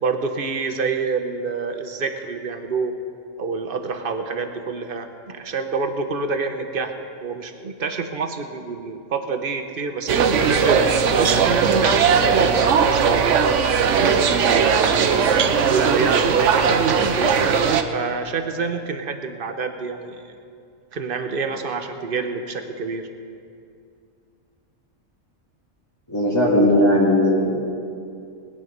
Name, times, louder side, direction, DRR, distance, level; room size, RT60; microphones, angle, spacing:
voice 1, 0.0-3.0 3.4-6.9 7.2-10.8 11.1-12.6 12.9-15.0 15.4-17.3 17.9-20.2 20.9-23.1, right 4 dB, 45° right, 6 dB, 1.1 m, -27 dB
sound 1, 10.1-17.8, right 6 dB, 70° right, 1.1 m, -18 dB
voice 2, 26.1-27.5, left 1 dB, 20° left, -9 dB, 2.4 m, -17 dB
20.0 x 10.0 x 5.3 m, 2.4 s
omnidirectional pair, 1.4 m